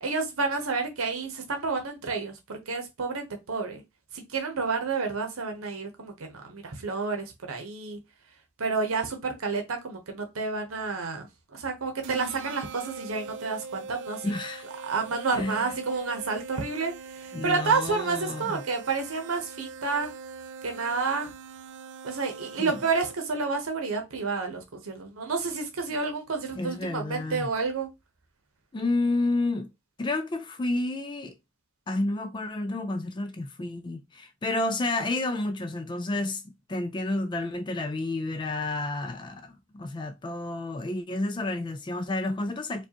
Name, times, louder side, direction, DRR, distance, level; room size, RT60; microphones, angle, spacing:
voice 1, 0.0-3.8 4.1-6.1 6.4-8.0 8.6-14.3 14.8-20.1 20.6-21.3 22.0-27.9, right 4 dB, 90° right, 0.8 m, -30 dB
sound 1, 12.0-23.4, right 4 dB, 60° right, 0.4 m, -42 dB
voice 2, 14.2-14.7 15.3-15.7 17.3-18.6 22.6-22.8 26.6-27.5 28.7-29.7 30.0-31.4 31.9-36.4 36.7-42.9, left 2 dB, 25° left, 0.3 m, -30 dB
4.7 x 2.3 x 2.8 m
head